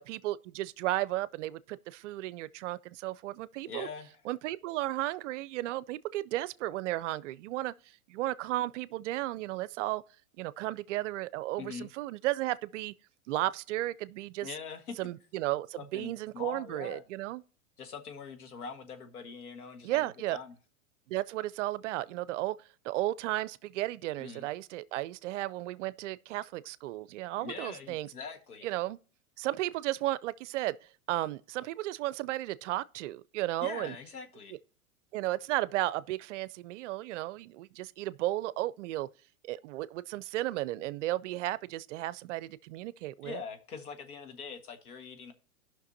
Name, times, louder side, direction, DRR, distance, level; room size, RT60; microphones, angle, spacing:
voice 1, 0.0-3.9 4.3-7.7 8.1-10.0 10.4-12.9 13.3-14.5 15.0-17.4 19.8-20.4 21.1-22.6 22.8-28.1 28.6-29.0 29.4-30.8 31.1-34.0 35.1-39.1 39.5-43.4, right 16 dB, 55° right, 0.5 m, -34 dB
voice 2, 3.7-4.1 11.6-11.9 14.4-15.0 15.8-17.0 17.8-20.5 24.2-24.5 27.4-28.7 33.6-34.5 43.2-45.3, left 5 dB, 85° left, 1.7 m, -43 dB
17.0 x 5.9 x 2.7 m
hypercardioid pair, 130°, 44 cm